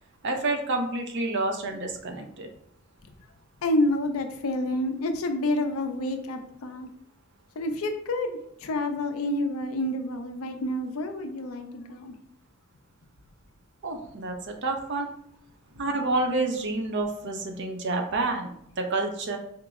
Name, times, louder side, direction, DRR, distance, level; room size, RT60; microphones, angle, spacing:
voice 1, 0.2-2.5 13.8-15.1 15.8-19.4, right 2 dB, 55° right, 4 dB, 0.5 m, -29 dB
voice 2, 3.6-6.9 7.6-12.1, left 1 dB, 75° left, 6 dB, 0.5 m, -28 dB
4.4 x 2.0 x 3.5 m, 0.69 s
head